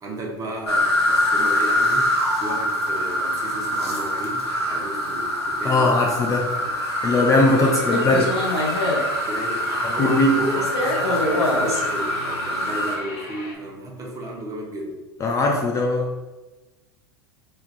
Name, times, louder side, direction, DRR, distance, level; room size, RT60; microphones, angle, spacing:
voice 1, 0.0-6.0 6.6-6.8 7.6-8.0 9.2-15.0, right 1 dB, 25° right, -1 dB, 0.7 m, -33 dB
sound 1, 0.7-13.0, left 1 dB, 85° left, 0.7 m, -23 dB
sound 2, 2.8-13.6, left 1 dB, 55° left, 0.9 m, -41 dB
voice 2, 5.6-6.6 7.0-8.3 9.8-10.4 15.2-16.1, left 2 dB, 25° left, 0 dB, 0.4 m, -20 dB
3.3 x 2.3 x 2.5 m, 1.2 s
figure-of-eight pair, 85°, 14 cm